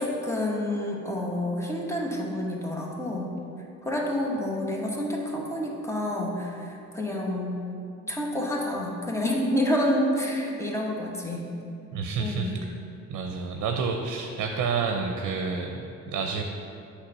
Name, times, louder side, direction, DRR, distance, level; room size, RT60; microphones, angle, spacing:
voice 1, 0.0-3.3 3.8-7.6 8.1-11.5 12.2-12.6, left 1 dB, 10° left, -2 dB, 1.2 m, -28 dB
voice 2, 11.9-12.5 13.1-16.4, right 5 dB, 75° right, 3 dB, 0.6 m, -29 dB
8.2 x 3.3 x 5.4 m, 2.7 s
cardioid pair, 90°, 30 cm